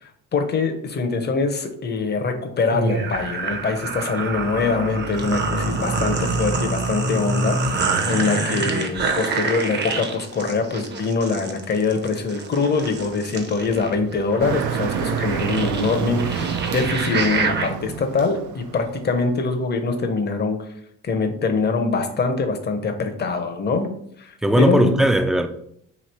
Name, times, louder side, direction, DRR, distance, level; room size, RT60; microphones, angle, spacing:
voice 1, 0.0-20.6 21.0-23.9 24.2-24.9, left 4 dB, 35° left, 0.7 m, -23 dB
sound 1, 2.7-17.7, right 3 dB, 35° right, 0.7 m, -26 dB
Motor vehicle (road), 14.4-19.3, right 8 dB, 75° right, 0.5 m, -28 dB
voice 2, 16.4-16.7 24.4-25.5, right 1 dB, ahead, 0.3 m, -19 dB
3.1 x 2.8 x 4.2 m
cardioid pair, 90°, 30 cm